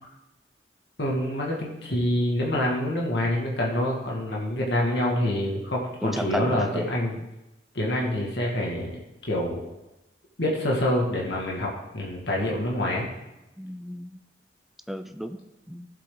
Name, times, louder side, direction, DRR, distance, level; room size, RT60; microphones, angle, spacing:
voice 1, 1.0-7.2 7.7-8.9 9.3-9.6 10.4-11.7 11.9-13.1, left 1 dB, 65° left, -3 dB, 2.0 m, -26 dB
voice 2, 6.0-6.9 13.6-14.2 14.9-15.4 15.7-15.9, equal, ahead, 8 dB, 0.5 m, -33 dB
16.0 x 7.8 x 3.9 m, 0.97 s
head